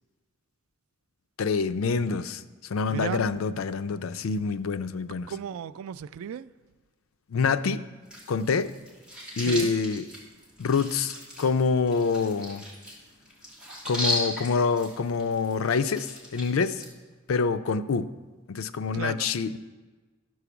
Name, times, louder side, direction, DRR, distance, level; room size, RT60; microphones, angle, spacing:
voice 1, 1.4-2.4 2.7-5.3 7.3-7.8 8.3-8.7 9.4-10.0 10.6-12.6 13.9-16.8 17.3-18.1 18.5-19.6, left 5 dB, 75° left, 0.4 m, -26 dB
voice 2, 2.9-3.3 5.3-6.5 9.4-9.7 18.9-19.3, right 8 dB, 80° right, 0.3 m, -35 dB
sound 1, 8.1-16.9, left 1 dB, 5° right, 2.8 m, -36 dB
12.5 x 4.8 x 7.0 m
head